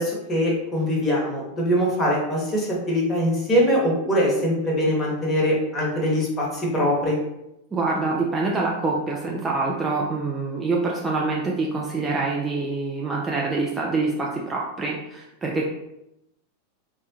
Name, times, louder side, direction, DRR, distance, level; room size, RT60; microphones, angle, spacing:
voice 1, 0.0-7.2, equal, 20° left, -3 dB, 1.1 m, -22 dB
voice 2, 7.7-15.7, right 3 dB, 15° right, -3 dB, 0.4 m, -25 dB
3.4 x 2.2 x 2.8 m, 0.86 s
figure-of-eight pair, 90°, 0 cm